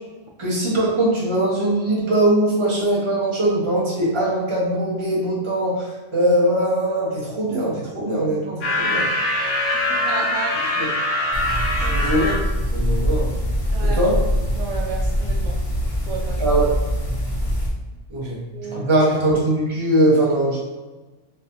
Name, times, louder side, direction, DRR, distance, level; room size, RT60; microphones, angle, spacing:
voice 1, 0.4-5.9 6.1-9.1 10.8-10.9 11.8-12.3 12.7-13.3 13.8-14.2 16.4-16.7 18.1-18.4 18.6-20.6, right 1 dB, 25° right, -5 dB, 1.0 m, -21 dB
sound 1, 8.6-12.4, left 1 dB, 70° left, 1.2 m, -23 dB
voice 2, 9.9-10.7 11.8-12.1 13.7-14.0 14.6-15.6 16.1-16.4 18.2-18.8, right 4 dB, 75° right, 0 dB, 0.9 m, -33 dB
sound 2, 11.3-17.7, equal, 30° left, 0.7 m, -23 dB
4.0 x 2.7 x 2.7 m, 1.2 s
omnidirectional pair, 1.3 m